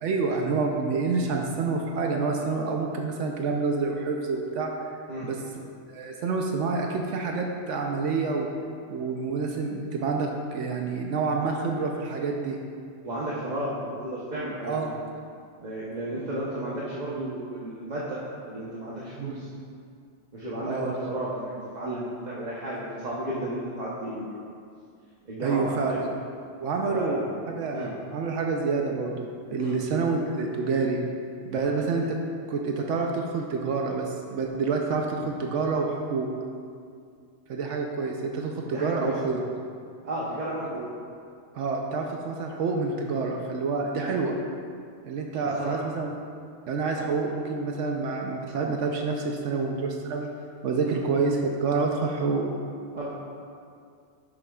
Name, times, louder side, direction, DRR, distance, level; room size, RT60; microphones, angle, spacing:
voice 1, 0.0-4.7 5.2-5.4 5.9-8.5 8.9-12.6 14.6-14.9 19.2-19.4 20.7-20.9 25.4-26.0 26.6-31.0 31.4-32.2 32.5-36.3 37.5-39.4 41.5-44.3 45.0-46.1 46.7-50.3 50.6-52.5, right 4 dB, 80° right, 1 dB, 1.0 m, -28 dB
voice 2, 13.0-14.9 15.6-18.2 18.4-19.5 20.3-24.5 25.3-26.0 26.9-27.2 27.7-27.9 29.6-29.8 31.5-31.7 38.6-39.4 40.0-40.9 43.9-44.1 45.6-45.8 50.8-51.0 52.9-53.1, right 1 dB, 40° right, -7 dB, 1.0 m, -33 dB
10.0 x 7.0 x 2.3 m, 2.3 s
omnidirectional pair, 1.2 m